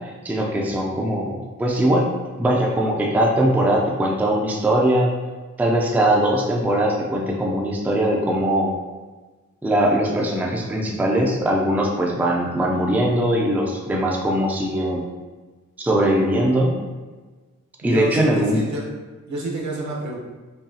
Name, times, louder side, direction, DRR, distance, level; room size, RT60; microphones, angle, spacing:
voice 1, 0.0-2.1 2.4-5.1 5.6-8.7 9.6-15.1 15.8-16.8 17.8-18.6, right 1 dB, 5° right, -1 dB, 0.4 m, -21 dB
voice 2, 17.8-18.8 19.3-20.2, right 2 dB, 70° right, -3 dB, 1.0 m, -28 dB
5.4 x 2.4 x 2.7 m, 1.3 s
wide cardioid pair, 145°, 30 cm